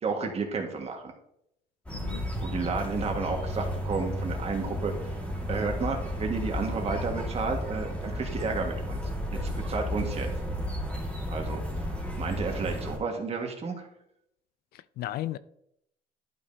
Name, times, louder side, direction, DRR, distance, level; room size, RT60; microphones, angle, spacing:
voice 1, 0.0-1.1 2.4-5.1 5.5-9.0 9.5-10.3 11.3-11.9 12.2-13.9, right 4 dB, 40° right, 1.6 m, -32 dB
voice 2, 1.9-2.3 14.7-15.4, left 14 dB, 70° left, 0.4 m, -35 dB
sound 1, 1.9-13.0, equal, 5° left, 1.8 m, -33 dB
11.5 x 5.3 x 2.7 m
cardioid pair, 110°, 17 cm